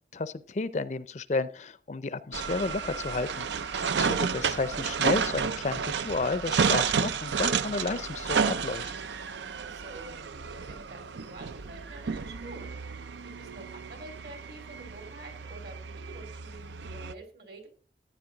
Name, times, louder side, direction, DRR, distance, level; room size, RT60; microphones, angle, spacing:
voice 1, 0.1-8.9, left 3 dB, 40° left, 15 dB, 0.5 m, -32 dB
sound 1, 2.3-17.1, right 6 dB, 80° right, 0.5 m, -31 dB
voice 2, 9.6-17.7, right 2 dB, 60° right, 6 dB, 2.9 m, -48 dB
14.5 x 9.1 x 3.9 m, 0.42 s
head